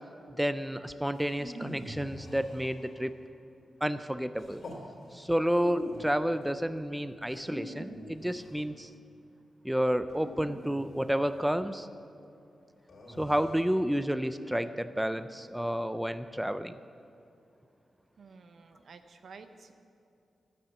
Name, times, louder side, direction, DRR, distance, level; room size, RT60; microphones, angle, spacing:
voice 1, 0.4-3.1 3.8-4.6 5.1-8.9 9.6-11.9 13.2-16.8, equal, 5° right, 11 dB, 0.4 m, -30 dB
sound 1, 1.1-3.1 4.4-4.9 5.5-6.2 7.3-8.6 10.1-11.3 12.9-13.7, equal, 60° left, 3.1 m, -43 dB
voice 2, 18.2-19.7, right 4 dB, 70° right, 8 dB, 0.8 m, -51 dB
12.0 x 8.6 x 7.1 m, 2.6 s
cardioid pair, 85°, 0 cm